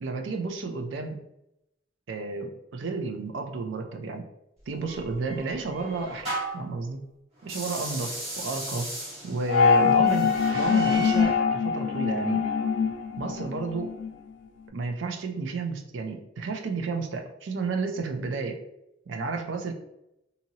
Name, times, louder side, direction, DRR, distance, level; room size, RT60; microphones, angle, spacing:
voice 1, 0.0-1.2 2.1-4.3 4.7-7.0 7.4-8.9 9.2-12.5 13.2-13.9 14.7-18.6 19.1-19.7, right 3 dB, 80° right, 5 dB, 0.4 m, -32 dB
sound 1, 4.9-6.7 7.4-11.4, left 2 dB, 35° right, 1.3 m, -34 dB
sound 2, 9.5-14.1, left 6 dB, 70° left, 0.3 m, -24 dB
2.8 x 2.7 x 2.7 m, 0.85 s
head